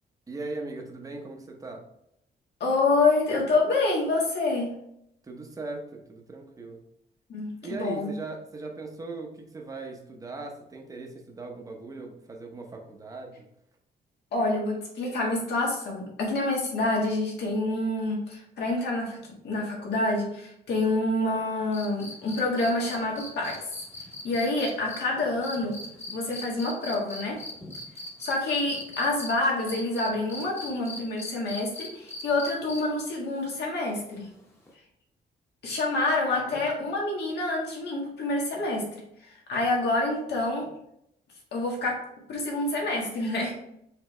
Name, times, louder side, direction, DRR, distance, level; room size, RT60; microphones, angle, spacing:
voice 1, 0.3-1.8 5.2-6.8 7.6-13.5 36.4-36.6, right 3 dB, 20° right, 2 dB, 0.7 m, -39 dB
voice 2, 2.6-4.7 7.3-8.1 14.3-19.2 19.4-23.6 24.2-25.8 26.1-27.4 28.2-34.3 35.6-40.7 41.5-42.0 42.3-43.5, left 2 dB, 80° left, -2 dB, 1.6 m, -27 dB
sound 1, 21.7-29.3 29.7-33.0 34.7-34.8, left 1 dB, 15° left, 0.9 m, -40 dB
4.7 x 3.5 x 3.2 m, 0.76 s
cardioid pair, 150°, 17 cm